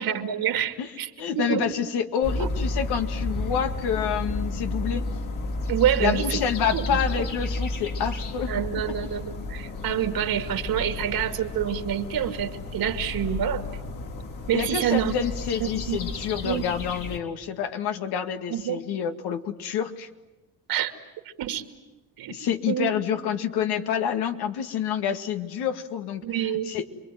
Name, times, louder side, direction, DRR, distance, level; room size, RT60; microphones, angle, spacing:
voice 1, 0.0-1.7 2.4-2.5 5.7-6.4 6.7-6.9 8.5-13.8 14.5-15.1 15.6-16.0 16.4-16.7 18.5-18.8 20.7-20.9 21.4-21.6 22.2-22.9 26.2-26.7, right 10 dB, 65° right, 7 dB, 2.5 m, -27 dB
voice 2, 1.2-5.1 6.0-8.5 14.5-20.1 22.3-26.2 26.7-26.8, left 8 dB, 80° left, 6 dB, 2.2 m, -28 dB
sound 1, 2.2-17.2, left 2 dB, 55° left, 3.6 m, -32 dB
28.5 x 22.5 x 9.3 m, 1.1 s
cardioid pair, 95°, 38 cm